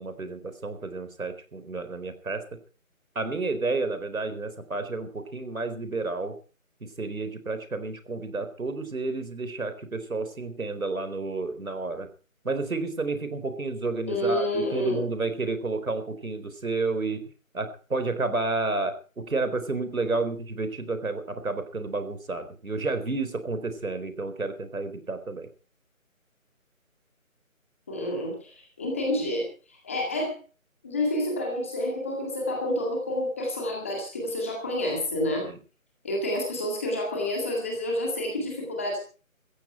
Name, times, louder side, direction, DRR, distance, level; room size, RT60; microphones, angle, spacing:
voice 1, 0.0-2.5 3.1-6.4 6.8-12.1 12.4-25.5 35.4-35.6, right 3 dB, 75° right, 10 dB, 4.3 m, -31 dB
voice 2, 14.1-15.0 27.9-29.4 29.8-30.3 30.8-35.5 36.0-39.0, left 1 dB, 10° left, -1 dB, 2.0 m, -29 dB
16.5 x 15.0 x 4.5 m, 0.37 s
figure-of-eight pair, 175°, 42 cm